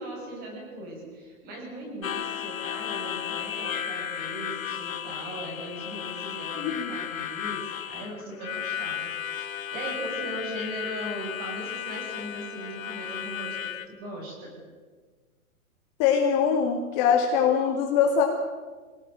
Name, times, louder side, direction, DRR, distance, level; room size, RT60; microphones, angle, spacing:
voice 1, 0.0-14.6, right 1 dB, 20° right, 1 dB, 6.7 m, -39 dB
Harmonica, 2.0-13.9, left 9 dB, 65° left, 2.1 m, -34 dB
voice 2, 16.0-18.3, left 7 dB, 25° left, 1 dB, 2.2 m, -22 dB
25.5 x 18.0 x 9.2 m, 1.4 s
hypercardioid pair, 165°, 43 cm